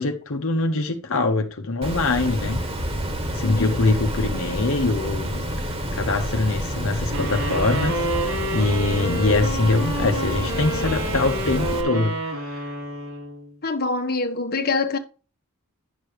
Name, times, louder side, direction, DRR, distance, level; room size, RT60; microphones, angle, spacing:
voice 1, 0.0-2.6 3.3-5.5 5.9-12.6, left 3 dB, 65° left, 1.1 m, -23 dB
Water, 1.8-11.8, equal, 25° right, 1.8 m, -28 dB
voice 2, 3.4-3.8 13.6-15.0, left 3 dB, 45° left, 1.3 m, -25 dB
sound 1, 7.1-13.5, right 1 dB, 70° right, 3.8 m, -29 dB
10.5 x 6.8 x 3.0 m
head